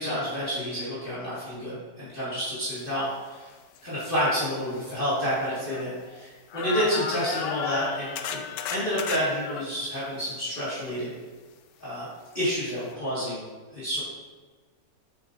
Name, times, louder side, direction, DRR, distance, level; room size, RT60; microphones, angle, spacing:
voice 1, 0.0-3.5 3.8-8.4 8.7-11.1 11.8-12.1 12.3-13.5 13.7-14.0, equal, 30° left, -11 dB, 1.9 m, -29 dB
sound 1, 3.8-3.9 4.5-6.2 6.5-9.7 12.4-12.5 12.9-13.0, left 7 dB, 75° left, 1.1 m, -34 dB
7.4 x 5.2 x 2.5 m, 1.4 s
omnidirectional pair, 1.9 m